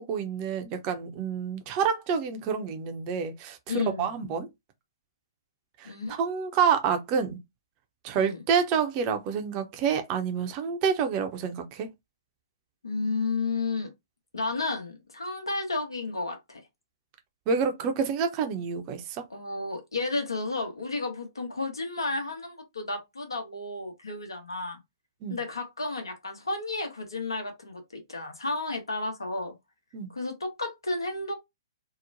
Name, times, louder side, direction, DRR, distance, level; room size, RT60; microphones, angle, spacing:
voice 1, 0.0-4.5 5.8-7.4 8.0-11.9 17.5-19.2 25.2-25.4 29.9-30.1, right 6 dB, 30° right, 0.5 m, -28 dB
voice 2, 3.7-4.1 5.8-6.1 8.1-8.4 12.8-13.9 14.3-16.6 19.3-24.8 25.3-29.5 30.1-31.3, left 3 dB, 80° left, 1.0 m, -32 dB
2.9 x 2.1 x 2.6 m
figure-of-eight pair, 120°, 2 cm